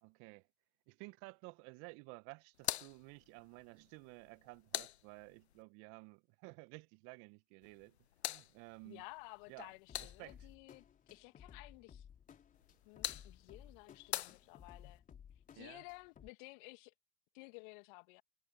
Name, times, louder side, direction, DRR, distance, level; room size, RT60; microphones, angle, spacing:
voice 1, 0.0-0.5 0.9-8.0 8.3-9.0 9.5-9.7 10.0-10.4 15.5-15.8, right 29 dB, 45° right, 1.6 m, -54 dB
sound 1, 2.5-5.6 7.6-10.6 12.5-15.0, left 12 dB, 80° left, 0.5 m, -46 dB
voice 2, 8.8-10.8 11.1-12.1 12.8-15.0 15.5-16.9 17.3-18.2, left 30 dB, 50° left, 2.4 m, -54 dB
sound 2, 9.9-16.3, left 8 dB, 25° left, 3.6 m, -58 dB
hypercardioid pair, 95°, 32 cm